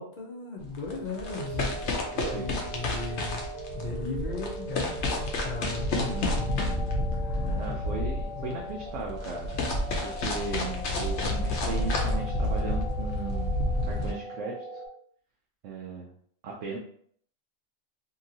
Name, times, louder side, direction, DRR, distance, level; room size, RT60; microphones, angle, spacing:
voice 1, 0.0-3.4 3.7-5.0 5.4-6.0 6.4-6.6 7.2-7.8 8.4-8.6, left 3 dB, 50° left, 0 dB, 0.6 m, -37 dB
sound 1, 0.6-14.1, left 1 dB, 75° left, 0.9 m, -30 dB
sound 2, 1.2-14.9, equal, 5° right, 0.7 m, -40 dB
voice 2, 2.1-2.5 5.9-6.3 7.5-9.5 10.0-14.8 15.6-16.1 16.4-16.8, right 4 dB, 85° right, -2 dB, 0.9 m, -36 dB
2.8 x 2.7 x 2.7 m, 0.62 s
omnidirectional pair, 1.2 m